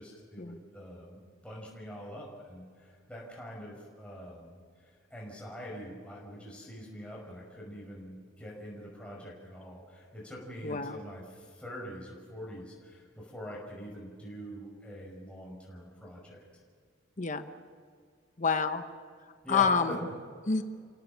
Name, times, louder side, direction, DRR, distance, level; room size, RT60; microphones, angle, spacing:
voice 1, 0.0-16.4 19.4-20.0, equal, 5° left, -4 dB, 5.7 m, -44 dB
voice 2, 10.6-11.0 17.2-17.5 18.4-18.8 19.5-20.0 20.5-20.6, left 5 dB, 40° left, 8 dB, 1.0 m, -28 dB
30.0 x 17.0 x 7.5 m, 2.1 s
head